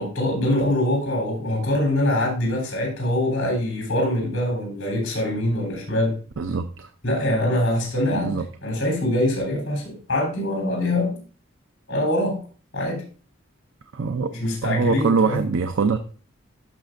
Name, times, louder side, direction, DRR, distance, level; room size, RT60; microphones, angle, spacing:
voice 1, 0.0-6.2 7.0-11.2 11.9-12.4 12.7-13.1 14.3-15.4, left 1 dB, 60° left, -2 dB, 3.4 m, -24 dB
voice 2, 6.4-6.9 8.1-8.4 13.9-14.3 14.6-16.0, right 5 dB, 65° right, 7 dB, 0.6 m, -23 dB
12.0 x 6.1 x 2.5 m, 0.40 s
head